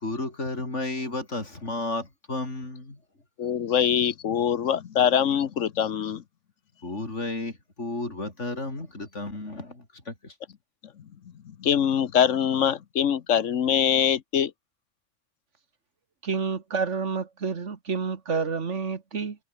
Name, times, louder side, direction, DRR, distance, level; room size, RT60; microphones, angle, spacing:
voice 1, 0.0-3.0 6.8-10.3, left 2 dB, 75° left, 5.3 m, -33 dB
voice 2, 3.4-6.2 11.4-14.5, left 8 dB, 90° left, 1.4 m, -23 dB
voice 3, 16.2-19.4, right 5 dB, 75° right, 2.1 m, -29 dB
omnidirectional pair, 1.2 m